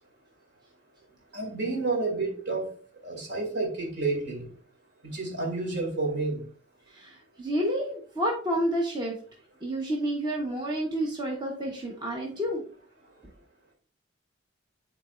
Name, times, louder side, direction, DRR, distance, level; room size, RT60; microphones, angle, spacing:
voice 1, 1.3-2.7 3.0-4.5 5.0-6.4, right 3 dB, 60° right, 2.4 m, -30 dB
voice 2, 6.9-9.2 9.6-12.6, right 1 dB, 25° right, 1.0 m, -29 dB
9.5 x 4.0 x 2.4 m
head